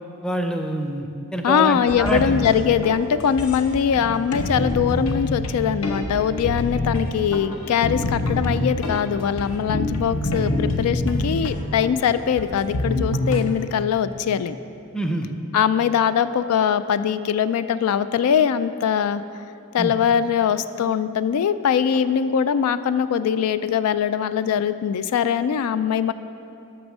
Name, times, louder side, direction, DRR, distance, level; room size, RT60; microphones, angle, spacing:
voice 1, 0.2-2.2 14.9-15.3 19.8-19.9, right 1 dB, 5° left, 4 dB, 0.5 m, -26 dB
voice 2, 1.4-14.6 15.5-19.2 19.7-26.1, left 8 dB, 90° left, 13 dB, 0.3 m, -22 dB
sound 1, 1.9-13.4, left 1 dB, 70° left, 0.8 m, -26 dB
8.6 x 6.2 x 6.1 m, 2.7 s
head